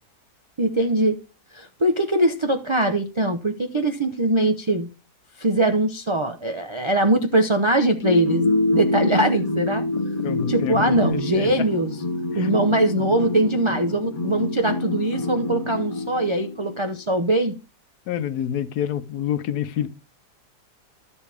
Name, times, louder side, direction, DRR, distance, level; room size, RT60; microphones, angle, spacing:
voice 1, 0.6-1.2 1.5-4.9 5.4-9.9 10.5-12.0 12.3-17.6, right 1 dB, 45° right, 0.4 m, -22 dB
sound 1, 8.0-16.8, left 2 dB, 40° left, 0.5 m, -26 dB
voice 2, 10.2-11.5 12.3-12.5 18.1-19.9, left 10 dB, 75° left, 1.3 m, -27 dB
11.5 x 7.1 x 3.4 m
omnidirectional pair, 1.7 m